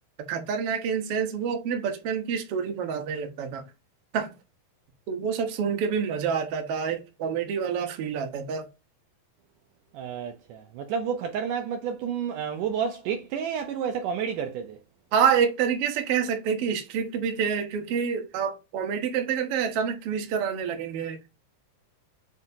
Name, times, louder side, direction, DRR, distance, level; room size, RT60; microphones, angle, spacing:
voice 1, 0.3-3.6 4.1-4.3 5.1-8.7 15.1-21.3, right 7 dB, 55° right, 1.8 m, -27 dB
voice 2, 9.9-14.8, right 7 dB, 75° right, 2.1 m, -30 dB
7.5 x 4.6 x 2.8 m
omnidirectional pair, 4.0 m